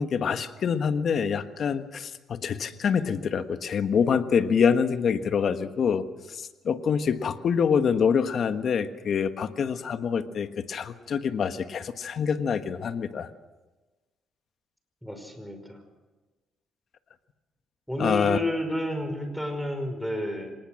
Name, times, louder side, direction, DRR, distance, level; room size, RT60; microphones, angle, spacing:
voice 1, 0.0-13.3 18.0-18.4, left 6 dB, 55° left, 9 dB, 1.4 m, -26 dB
voice 2, 15.0-15.8 17.9-20.5, equal, ahead, 6 dB, 5.2 m, -30 dB
25.5 x 19.5 x 6.5 m, 1.2 s
cardioid pair, 90°, 0 cm